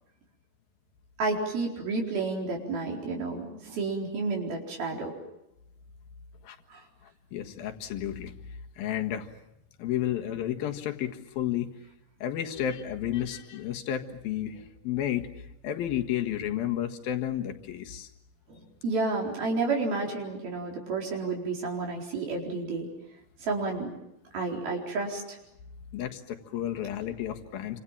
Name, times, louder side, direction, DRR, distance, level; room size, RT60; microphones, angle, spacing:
voice 1, 1.2-5.1 6.7-6.8 18.5-22.9 23.4-23.9 24.3-25.4, right 3 dB, 80° right, -1 dB, 6.3 m, -31 dB
voice 2, 7.3-8.3 8.8-9.3 9.8-11.7 12.2-14.6 14.8-15.3 15.6-18.1 25.9-27.8, left 11 dB, 80° left, 4 dB, 3.5 m, -31 dB
28.5 x 26.5 x 7.5 m, 0.87 s
omnidirectional pair, 4.2 m